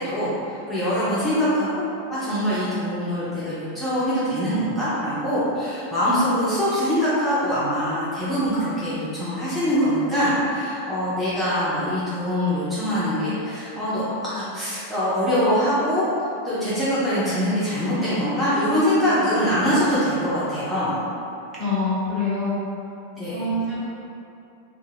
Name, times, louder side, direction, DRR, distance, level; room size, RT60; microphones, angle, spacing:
voice 1, 0.0-1.8 2.1-16.0 16.4-21.0 23.2-23.4, equal, 5° left, -13 dB, 0.6 m, -23 dB
voice 2, 21.6-22.6 23.3-23.8, left 2 dB, 25° right, -11 dB, 1.1 m, -25 dB
2.3 x 2.2 x 3.2 m, 2.7 s
figure-of-eight pair, 90°, 0 cm